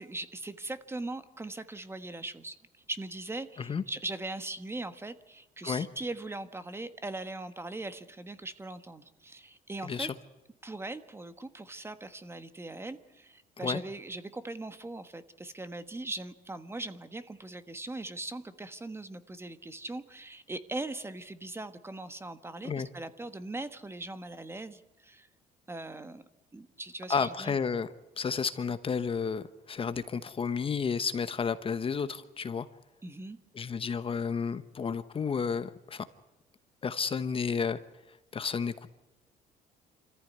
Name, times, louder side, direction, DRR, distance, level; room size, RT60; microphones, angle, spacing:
voice 1, 0.0-2.6 2.9-10.1 10.6-25.3 25.7-26.2 26.5-27.5 33.0-33.4, right 2 dB, 15° right, 11 dB, 1.4 m, -40 dB
voice 2, 9.8-10.1 13.6-13.8 22.6-22.9 27.1-32.7 33.5-36.0 36.8-37.8 38.3-38.9, left 6 dB, 30° left, 12 dB, 1.0 m, -31 dB
26.5 x 14.5 x 9.5 m, 1.1 s
cardioid pair, 110°, 17 cm